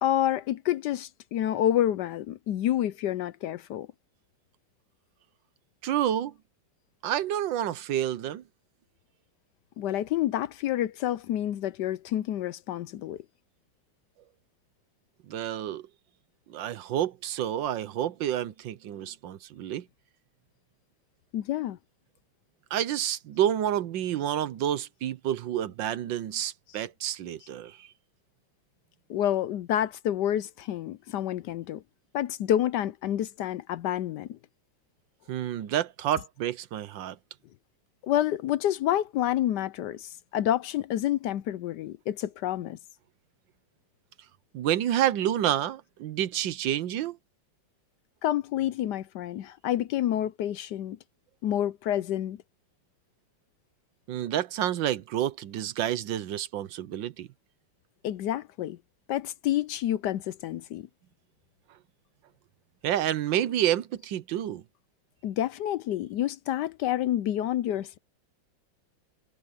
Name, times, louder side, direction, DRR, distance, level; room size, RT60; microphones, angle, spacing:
voice 1, 0.0-3.9 9.8-13.2 21.3-21.8 29.1-31.8 32.1-34.4 38.0-42.8 48.2-51.0 51.4-52.4 58.0-58.8 59.1-60.9 65.2-68.0, left 12 dB, 70° left, 1.1 m, -28 dB
voice 2, 5.8-6.3 7.0-8.4 15.3-15.9 16.5-19.8 22.7-27.9 35.3-37.2 44.5-47.2 54.1-57.3 62.8-64.6, right 11 dB, 75° right, 1.5 m, -29 dB
omnidirectional pair, 2.1 m